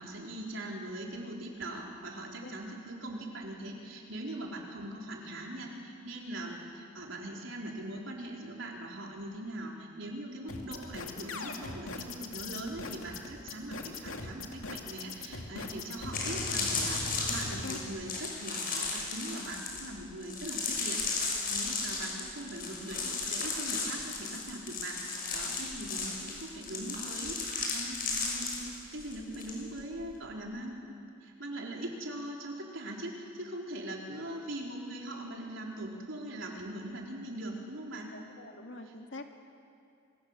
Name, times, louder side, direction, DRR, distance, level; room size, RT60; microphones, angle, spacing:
voice 1, 0.0-25.0 25.3-30.8 31.2-38.1 38.9-39.0, right 1 dB, 70° right, -1 dB, 4.4 m, -41 dB
sound 1, 10.5-17.8, left 3 dB, 90° left, 2.4 m, -40 dB
sound 2, 15.5-15.6 16.0-29.5 29.8-30.1, left 4 dB, 45° left, 6.4 m, -35 dB
voice 2, 38.1-39.2, left 2 dB, 65° left, 4 dB, 2.1 m, -45 dB
27.5 x 23.5 x 7.5 m, 2.6 s
head